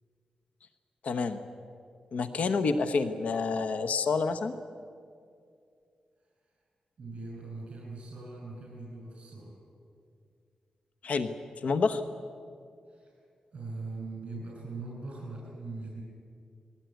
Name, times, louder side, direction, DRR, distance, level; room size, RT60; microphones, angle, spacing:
voice 1, 1.0-1.4 2.1-4.5 11.0-11.3 11.6-12.0, left 4 dB, 75° left, 8 dB, 1.0 m, -28 dB
voice 2, 7.0-9.5 12.9-13.1 13.5-16.0, right 3 dB, 50° right, -2 dB, 6.5 m, -41 dB
20.5 x 17.5 x 9.3 m, 2.3 s
wide cardioid pair, 110°, 2 cm